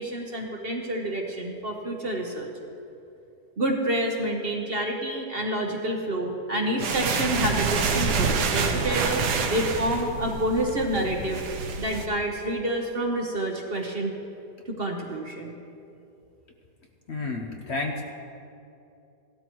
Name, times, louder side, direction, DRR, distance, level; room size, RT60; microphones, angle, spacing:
voice 1, 0.0-2.5 3.6-11.4 11.8-14.1 14.7-15.5, right 1 dB, 40° right, 1 dB, 1.0 m, -28 dB
sound 1, 6.8-12.1, right 4 dB, 80° right, 1.4 m, -27 dB
voice 2, 17.1-18.0, left 3 dB, 50° left, 2 dB, 0.9 m, -30 dB
16.5 x 12.5 x 3.1 m, 2.7 s
omnidirectional pair, 1.7 m